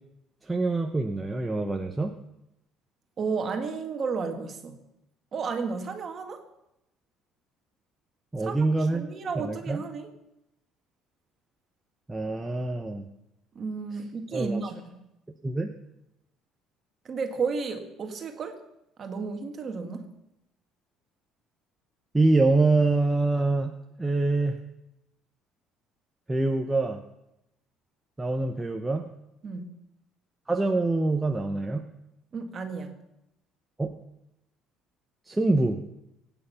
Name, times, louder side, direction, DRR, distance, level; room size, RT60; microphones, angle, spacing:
voice 1, 0.4-2.1 8.3-9.0 9.4-9.8 12.1-13.0 14.3-14.6 15.4-15.7 22.1-23.7 24.0-24.6 26.3-27.0 28.2-29.1 30.5-31.8 33.8-33.9 35.3-35.8, right 2 dB, 10° right, 3 dB, 0.7 m, -25 dB
voice 2, 3.2-4.8 5.3-6.4 8.4-10.1 13.5-15.0 17.0-18.6 19.0-20.1 29.4-29.7 32.3-33.0, right 5 dB, 30° right, 5 dB, 1.8 m, -33 dB
23.5 x 9.0 x 5.7 m, 0.87 s
cardioid pair, 170°, 0 cm